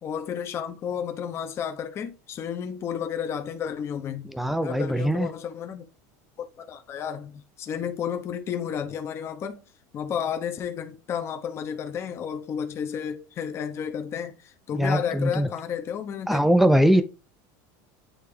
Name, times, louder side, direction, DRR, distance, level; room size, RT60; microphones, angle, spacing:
voice 1, 0.0-5.8 6.6-9.6 9.9-16.4, left 8 dB, 25° left, 0.8 m, -32 dB
voice 2, 4.2-5.3 14.7-15.5 16.3-17.0, equal, ahead, 0.5 m, -21 dB
8.8 x 3.3 x 3.3 m
supercardioid pair, 155°, 10 cm